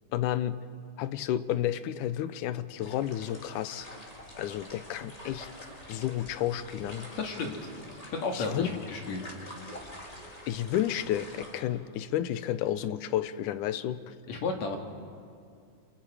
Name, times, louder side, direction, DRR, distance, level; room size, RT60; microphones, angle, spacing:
voice 1, 0.1-0.6 1.0-3.9 4.4-5.5 5.9-7.1 8.3-8.7 10.5-14.2, left 12 dB, 80° left, 13 dB, 2.2 m, -31 dB
sound 1, 2.8-11.6, equal, 10° left, 2.6 m, -46 dB
voice 2, 7.2-7.6 8.0-9.2 14.3-14.8, left 4 dB, 60° left, 2 dB, 3.1 m, -33 dB
29.0 x 26.5 x 4.9 m, 2.3 s
omnidirectional pair, 3.6 m